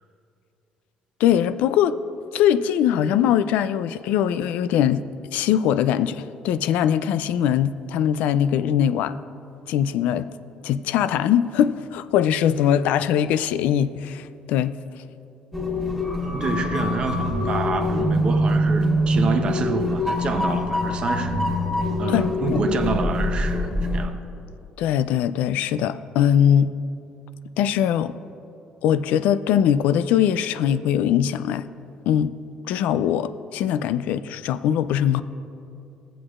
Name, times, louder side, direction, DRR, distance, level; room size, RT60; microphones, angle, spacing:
voice 1, 1.2-2.0 2.3-5.0 5.3-9.2 9.7-10.3 10.6-14.7 22.1-22.6 24.8-26.7 27.6-28.1 28.8-31.7 32.1-32.3 32.7-35.2, left 9 dB, 80° left, 14 dB, 0.3 m, -21 dB
sound 1, 15.5-24.1, left 1 dB, 5° left, 1.9 m, -24 dB
voice 2, 16.2-21.4 22.0-24.1, right 4 dB, 40° right, 7 dB, 0.7 m, -27 dB
16.5 x 7.9 x 2.4 m, 2.6 s
cardioid pair, 125°, 3 cm